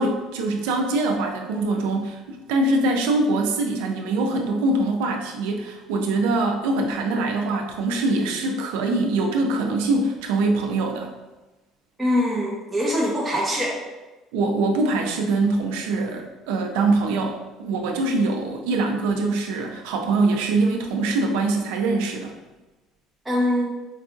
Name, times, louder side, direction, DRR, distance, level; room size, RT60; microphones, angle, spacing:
voice 1, 0.0-11.1 14.3-22.3, right 2 dB, 90° right, 2 dB, 0.4 m, -23 dB
voice 2, 12.0-13.8 23.2-23.7, left 1 dB, 10° right, -6 dB, 0.6 m, -23 dB
4.7 x 2.4 x 2.4 m, 1.1 s
supercardioid pair, 105°, 0 cm